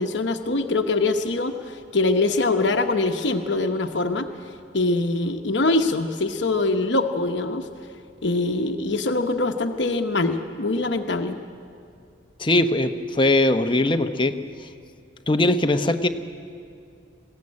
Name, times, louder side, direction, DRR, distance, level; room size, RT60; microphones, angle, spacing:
voice 1, 0.0-4.3 4.7-7.7 8.2-11.4, left 2 dB, 65° left, 6 dB, 1.0 m, -23 dB
voice 2, 12.4-14.3 15.3-16.1, left 2 dB, 25° left, 7 dB, 0.9 m, -20 dB
21.5 x 16.0 x 9.7 m, 2.4 s
head